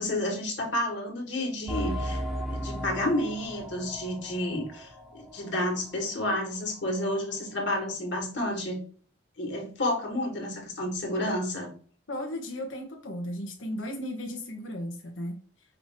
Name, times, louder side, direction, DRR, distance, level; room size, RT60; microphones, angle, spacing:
voice 1, 0.0-2.2 2.5-8.8 9.4-11.7, left 1 dB, 60° left, 0 dB, 1.8 m, -30 dB
sound 1, 1.7-6.0 6.3-6.4 6.9-7.0, equal, ahead, 0.9 m, -36 dB
voice 2, 12.1-15.4, left 1 dB, 80° left, 2 dB, 1.1 m, -35 dB
5.6 x 2.7 x 3.5 m, 0.44 s
head